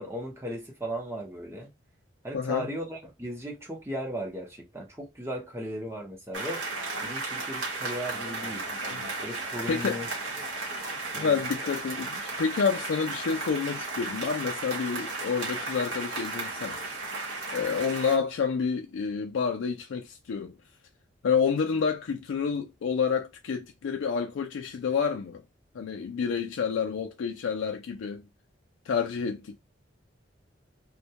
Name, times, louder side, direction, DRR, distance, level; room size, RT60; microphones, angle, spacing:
voice 1, 0.0-1.7 2.2-6.7 7.0-8.7 9.2-10.2 11.0-11.4, equal, 15° right, 0.7 m, -37 dB
voice 2, 2.3-2.7 8.9-9.1 9.7-10.0 11.2-16.8 17.5-20.5 21.2-25.4 25.7-28.3 28.9-29.6, left 6 dB, 75° left, 0.4 m, -29 dB
sound 1, 6.3-18.2, right 3 dB, 70° right, 0.9 m, -34 dB
2.2 x 2.1 x 2.8 m
head